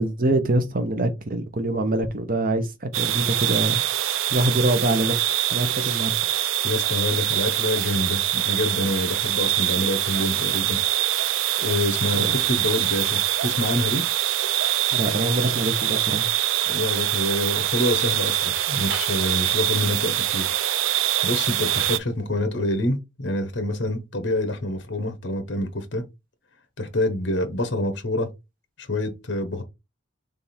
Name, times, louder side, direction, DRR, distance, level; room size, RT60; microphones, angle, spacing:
voice 1, 0.0-3.8 4.3-5.2 5.5-6.1 12.1-12.4 14.9-16.3, right 1 dB, 45° right, 0.8 m, -24 dB
sound 1, 2.9-22.0, right 13 dB, 90° right, 0.4 m, -24 dB
voice 2, 6.6-10.8 11.6-14.0 16.6-20.5 21.2-26.0 26.8-28.3 28.8-29.6, left 1 dB, 60° left, 0.9 m, -26 dB
3.5 x 3.4 x 4.2 m
head